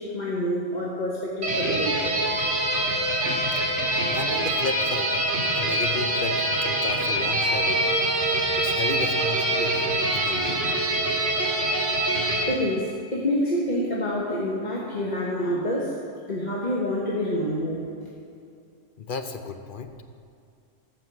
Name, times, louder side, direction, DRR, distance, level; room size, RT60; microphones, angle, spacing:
voice 1, 0.0-2.0 2.3-2.4 12.5-16.0 16.3-17.8, equal, 35° left, -5 dB, 1.4 m, -27 dB
sound 1, 1.4-12.4, right 1 dB, 60° right, 2.3 m, -24 dB
voice 2, 4.1-5.1 5.5-7.8 8.6-10.6 19.0-19.9, left 4 dB, 55° left, 7 dB, 0.7 m, -33 dB
15.0 x 5.8 x 6.2 m, 2.4 s
omnidirectional pair, 1.4 m